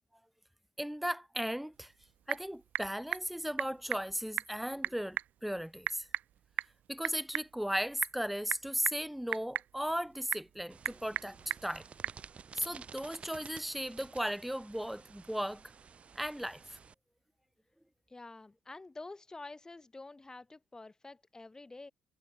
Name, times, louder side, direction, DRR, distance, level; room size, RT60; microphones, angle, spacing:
voice 1, 0.8-1.9 2.3-6.1 6.9-11.8 12.5-15.6 16.1-16.8, equal, 5° right, 1.1 m, -36 dB
Typing / Telephone, 1.7-12.2, right 11 dB, 70° right, 1.5 m, -40 dB
sound 1, 10.7-16.9, right 6 dB, 45° right, 1.6 m, -53 dB
voice 2, 18.1-21.9, left 3 dB, 25° left, 4.0 m, -48 dB
supercardioid pair, 60°, 3 cm